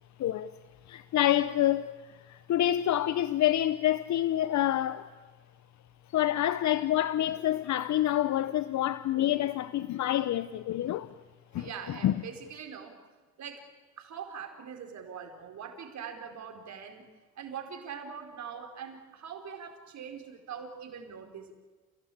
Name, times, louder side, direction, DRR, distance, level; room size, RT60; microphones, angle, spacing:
voice 1, 0.2-0.5 0.9-5.1 6.1-11.1 11.5-12.2, left 12 dB, 70° left, 0.9 m, -27 dB
voice 2, 11.6-13.0 13.4-13.6 14.0-17.0 17.4-21.5, right 7 dB, 65° right, 4.8 m, -42 dB
29.0 x 17.0 x 8.7 m
cardioid pair, 90°, 30 cm